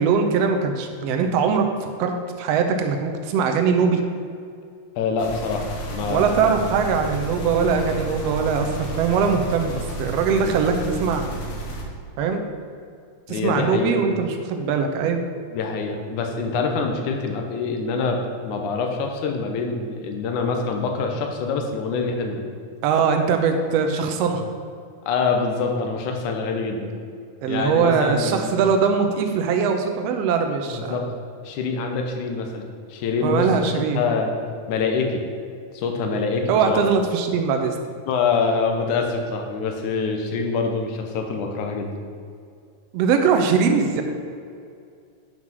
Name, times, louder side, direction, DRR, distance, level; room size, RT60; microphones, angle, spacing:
voice 1, 0.0-1.7 2.0-2.1 2.4-4.0 6.1-11.2 12.2-12.4 13.3-15.2 22.8-24.5 27.4-31.1 33.2-34.0 36.5-37.8 42.9-44.0, right 6 dB, 70° right, 5 dB, 1.6 m, -21 dB
voice 2, 5.0-6.5 10.4-10.5 13.3-14.0 15.5-22.4 25.1-26.9 27.5-28.5 30.6-31.1 31.5-34.3 34.7-35.2 35.7-36.8 38.1-41.9, left 4 dB, 80° left, 3 dB, 2.4 m, -25 dB
sound 1, 5.2-11.8, right 1 dB, 65° left, 2.2 m, -32 dB
7.9 x 5.6 x 6.0 m, 2.3 s
omnidirectional pair, 3.5 m